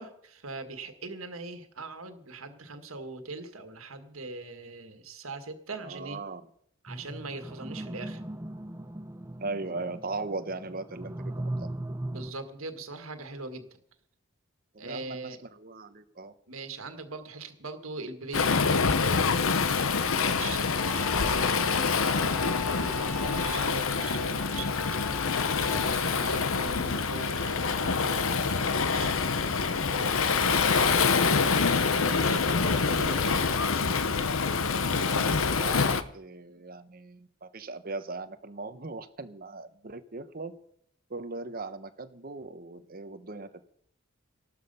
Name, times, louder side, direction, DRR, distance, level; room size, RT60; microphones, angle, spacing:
voice 1, 0.0-6.2 6.8-8.2 12.1-13.8 14.8-15.4 16.5-18.7 20.0-33.4, right 3 dB, 85° right, 7 dB, 1.8 m, -41 dB
voice 2, 5.8-6.4 9.4-11.7 14.7-16.3 20.2-20.7 34.9-40.5 41.1-43.6, right 3 dB, 45° right, 10 dB, 1.0 m, -39 dB
sound 1, 6.9-12.3, right 1 dB, 15° right, 0.6 m, -38 dB
Waves surf, 18.3-36.0, left 5 dB, 75° left, 0.9 m, -26 dB
Bowed string instrument, 20.8-25.8, left 2 dB, 10° left, 2.3 m, -42 dB
14.5 x 12.5 x 5.5 m, 0.66 s
head